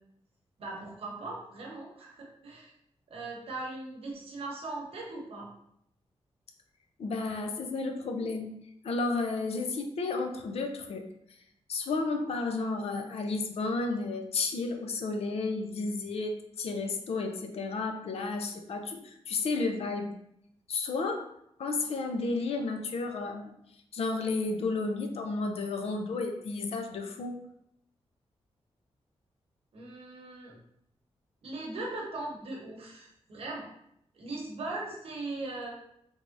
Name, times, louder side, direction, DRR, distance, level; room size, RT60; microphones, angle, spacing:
voice 1, 0.6-2.7 3.1-5.5 29.7-30.6 31.4-33.7 34.1-35.7, right 2 dB, 65° right, -2 dB, 0.9 m, -39 dB
voice 2, 7.0-8.5 8.8-11.1 11.7-20.1 20.7-21.3 21.6-23.5 23.9-27.4, left 3 dB, 70° left, 4 dB, 0.5 m, -32 dB
3.4 x 3.3 x 2.6 m, 0.75 s
wide cardioid pair, 180°, 11 cm